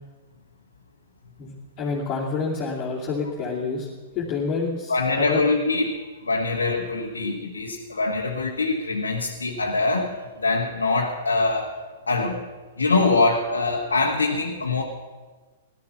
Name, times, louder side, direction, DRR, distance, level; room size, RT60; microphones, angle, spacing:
voice 1, 1.4-3.9 4.1-5.4, left 4 dB, 30° left, -7 dB, 2.6 m, -28 dB
voice 2, 4.9-6.0 6.2-10.1 10.4-11.7 12.1-12.5 12.8-14.8, left 3 dB, 80° left, -2 dB, 1.5 m, -23 dB
17.0 x 12.0 x 5.7 m, 1.3 s
figure-of-eight pair, 110°, 0 cm